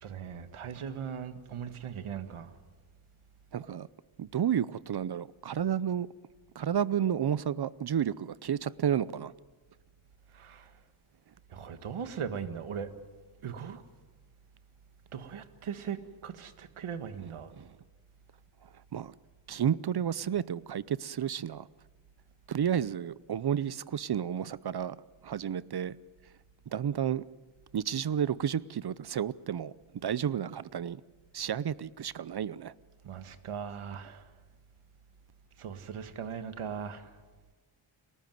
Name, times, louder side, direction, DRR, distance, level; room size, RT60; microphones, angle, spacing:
voice 1, 0.0-2.5 10.4-10.6 11.5-12.9 13.4-13.8 15.1-16.0 16.2-17.5 33.0-34.2 35.6-37.0, right 7 dB, 80° right, 10 dB, 1.8 m, -39 dB
voice 2, 3.5-3.9 4.2-6.1 6.6-9.3 17.6-17.7 18.9-19.1 19.5-21.7 22.5-25.0 25.2-26.0 26.7-27.2 27.7-29.7 30.0-31.0 31.3-32.7, right 9 dB, 50° right, 19 dB, 0.7 m, -31 dB
30.0 x 14.0 x 9.3 m, 1.3 s
cardioid pair, 65°, 49 cm